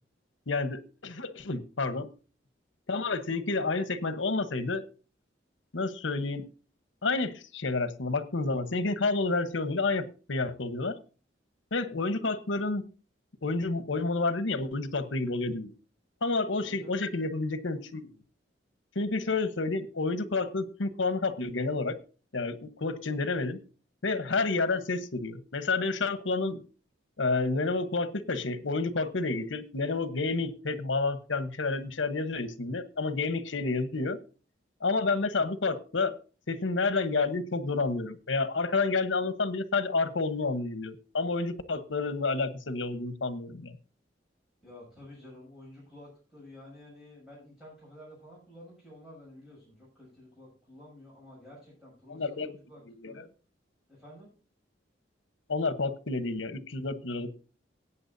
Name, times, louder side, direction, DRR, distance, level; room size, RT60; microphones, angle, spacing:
voice 1, 0.5-2.1 2.9-4.8 5.7-6.4 7.0-11.0 11.7-12.9 13.4-15.7 16.2-18.1 18.9-22.0 22.3-23.6 24.0-26.6 27.2-34.2 34.8-36.2 36.5-43.8 52.1-52.5 53.0-53.1 55.5-57.3, left 3 dB, 80° left, 11 dB, 1.0 m, -30 dB
voice 2, 16.5-17.0 44.6-53.3 53.9-54.3, left 1 dB, 5° right, -7 dB, 7.0 m, -51 dB
19.5 x 8.7 x 2.7 m, 0.36 s
head